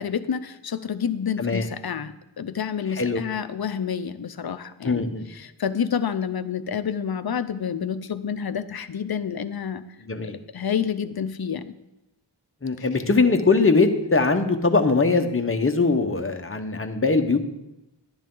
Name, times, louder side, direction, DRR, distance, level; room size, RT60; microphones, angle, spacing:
voice 1, 0.0-9.9 10.5-11.8 12.8-12.9, left 7 dB, 60° left, 12 dB, 0.7 m, -29 dB
voice 2, 4.8-5.3 10.1-10.4 12.6-17.4, left 3 dB, 30° left, 5 dB, 1.0 m, -21 dB
11.5 x 10.0 x 3.8 m, 0.92 s
wide cardioid pair, 55°, 43 cm